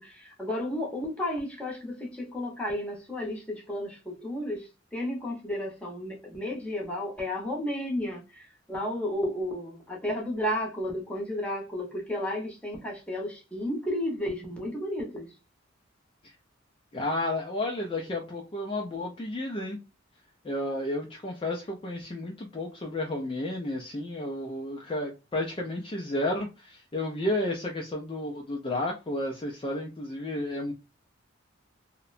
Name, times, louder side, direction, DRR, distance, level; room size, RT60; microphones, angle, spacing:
voice 1, 0.0-15.3, left 1 dB, 5° left, 0.8 m, -33 dB
voice 2, 16.9-19.8 20.4-30.7, left 1 dB, 25° left, 0.4 m, -32 dB
2.8 x 2.1 x 2.4 m
head